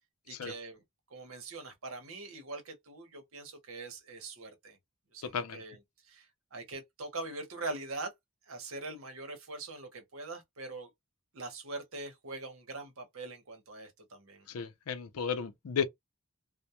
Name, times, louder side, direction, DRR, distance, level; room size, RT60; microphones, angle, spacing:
voice 1, 0.3-4.8 5.1-8.1 8.5-10.9 11.3-14.5, right 3 dB, 70° right, 0.9 m, -43 dB
voice 2, 5.2-5.6 14.5-15.8, left 6 dB, 85° left, 0.5 m, -34 dB
2.2 x 2.1 x 2.8 m
head